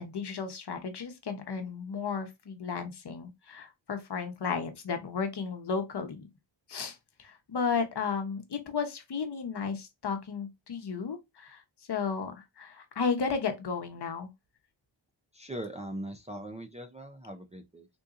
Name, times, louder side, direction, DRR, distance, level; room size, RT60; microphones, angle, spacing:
voice 1, 0.0-6.3 6.7-11.6 11.9-14.3, left 5 dB, 55° left, 0.9 m, -34 dB
voice 2, 15.3-17.9, right 1 dB, 15° right, 0.4 m, -40 dB
3.8 x 2.6 x 2.5 m
wide cardioid pair, 95°, 47 cm